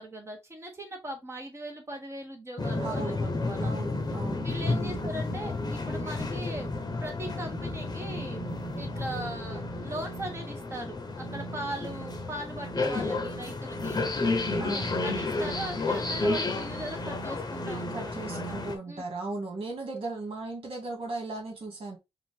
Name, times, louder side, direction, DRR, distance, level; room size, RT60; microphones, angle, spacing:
voice 1, 0.0-3.8 4.4-6.7 7.0-14.0 14.6-18.4 18.9-19.0, right 1 dB, 25° right, 1.3 m, -39 dB
sound 1, 2.6-18.7, left 2 dB, 40° left, 0.9 m, -32 dB
voice 2, 2.8-3.2 3.6-5.1 14.5-15.0 17.9-22.0, right 3 dB, 65° right, 2.0 m, -37 dB
4.9 x 2.5 x 3.6 m
wide cardioid pair, 125°, 10 cm